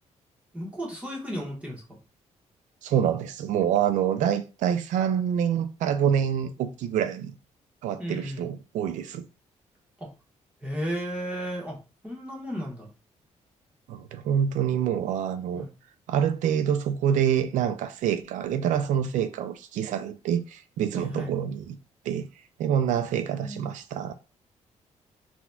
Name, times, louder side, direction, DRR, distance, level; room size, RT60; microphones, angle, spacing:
voice 1, 0.5-2.0 8.0-8.5 10.0-10.1 10.6-12.9 15.5-15.7 21.0-21.3 23.1-23.7, equal, 10° right, 1.2 m, -34 dB
voice 2, 2.8-7.3 7.8-9.2 13.9-15.7 16.1-21.8 22.0-22.3 22.6-24.1, right 9 dB, 90° right, 0.4 m, -26 dB
3.9 x 2.8 x 2.3 m
cardioid pair, 150°, 13 cm